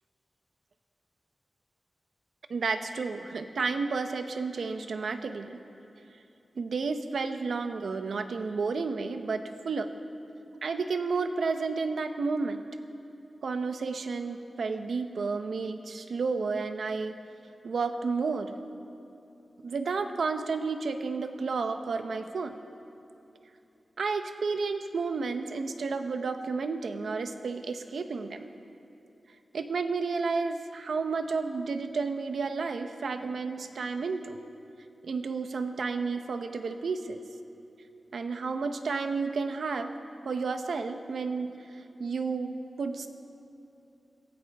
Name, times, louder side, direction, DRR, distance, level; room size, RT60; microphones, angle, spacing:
voice 1, 2.5-5.6 6.6-9.9 10.6-12.6 13.4-17.2 17.6-18.5 19.6-22.6 24.0-28.5 29.5-34.4 35.0-37.2 38.1-40.0 40.2-41.5 42.0-43.1, right 4 dB, 85° right, 7 dB, 0.9 m, -31 dB
25.0 x 16.0 x 3.6 m, 2.8 s
wide cardioid pair, 90°, 0 cm